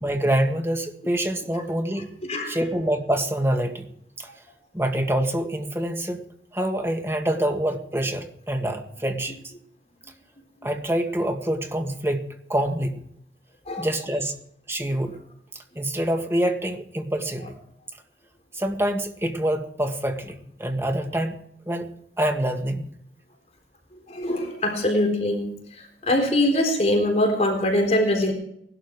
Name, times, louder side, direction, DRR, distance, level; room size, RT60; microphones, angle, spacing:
voice 1, 0.0-2.1 2.5-3.9 4.2-4.3 4.7-6.2 6.5-9.4 10.6-13.1 13.8-14.3 14.7-15.2 15.7-17.5 18.5-21.4 21.7-21.9 22.2-22.9, right 1 dB, 15° right, 5 dB, 1.7 m, -26 dB
voice 2, 24.1-25.4 26.1-28.3, left 1 dB, 40° left, 2 dB, 4.0 m, -22 dB
19.5 x 12.0 x 4.8 m, 0.69 s
head